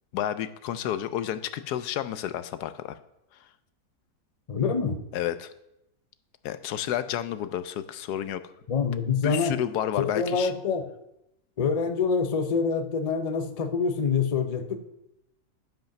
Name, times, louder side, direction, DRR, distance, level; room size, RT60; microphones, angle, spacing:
voice 1, 0.1-3.0 5.1-5.5 6.4-8.4 9.2-10.5, left 11 dB, 85° left, 12 dB, 1.2 m, -30 dB
voice 2, 4.5-5.0 8.7-9.5 10.0-10.9 11.6-14.8, left 5 dB, 40° left, 7 dB, 0.5 m, -26 dB
11.5 x 5.3 x 5.8 m, 0.86 s
omnidirectional pair, 1.7 m